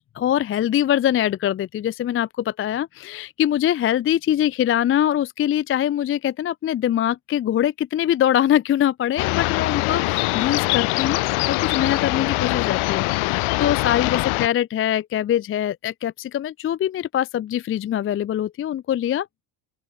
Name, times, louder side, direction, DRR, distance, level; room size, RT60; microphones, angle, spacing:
voice 1, 0.2-19.3, left 11 dB, 30° left, 0.4 m, -23 dB
sound 1, 9.2-14.5, left 24 dB, 80° left, 1.1 m, -23 dB
open air
cardioid pair, 140°, 49 cm